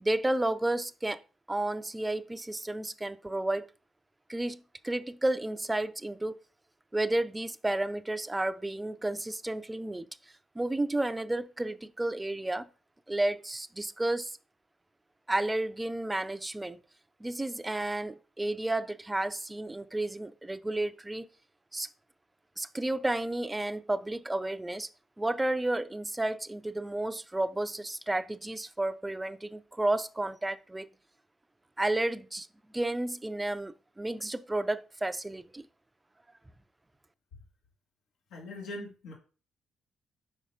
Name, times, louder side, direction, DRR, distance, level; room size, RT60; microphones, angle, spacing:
voice 1, 0.0-1.2 1.5-3.7 4.3-6.3 6.9-10.1 10.6-12.7 13.1-14.4 15.3-16.8 17.2-21.2 21.7-21.9 22.6-24.9 25.2-30.9 31.8-32.5 32.7-35.6, right 1 dB, 15° right, 0.5 m, -32 dB
voice 2, 38.3-39.1, left 1 dB, 80° left, 2.0 m, -41 dB
5.4 x 5.0 x 4.9 m
cardioid pair, 90°, 0 cm